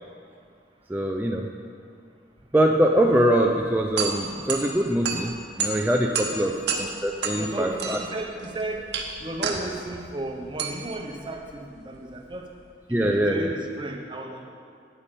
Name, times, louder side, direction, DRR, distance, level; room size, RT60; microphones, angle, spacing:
voice 1, 0.9-1.5 2.5-6.5 6.8-8.0 12.9-13.5, right 1 dB, 10° right, 1 dB, 0.4 m, -23 dB
sound 1, 3.5-12.6, right 5 dB, 65° right, 0.9 m, -32 dB
voice 2, 6.1-6.7 7.3-8.9 9.2-12.5 12.9-14.5, right 1 dB, 25° right, 2 dB, 0.9 m, -34 dB
9.1 x 8.2 x 5.2 m, 2.2 s
head